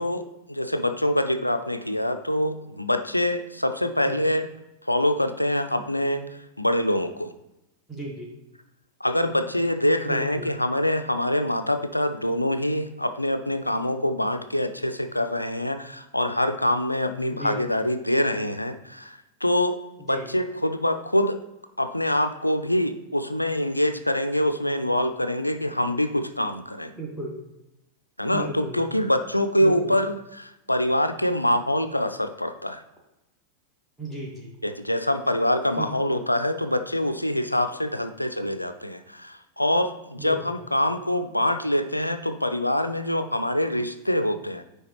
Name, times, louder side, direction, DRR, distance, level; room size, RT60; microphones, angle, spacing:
voice 1, 0.0-4.5 4.8-6.2 6.6-7.3 9.0-19.8 20.1-21.4 21.8-26.9 28.2-32.8 34.6-44.6, left 1 dB, 85° left, 9 dB, 0.3 m, -25 dB
voice 2, 7.9-8.3 10.1-10.5 17.3-17.7 20.0-20.3 26.9-27.3 28.3-29.0 29.6-30.0 34.0-34.5 35.8-36.1 40.2-40.6, right 1 dB, 5° right, -2 dB, 1.2 m, -35 dB
9.5 x 3.3 x 3.1 m, 0.94 s
figure-of-eight pair, 90°, 0 cm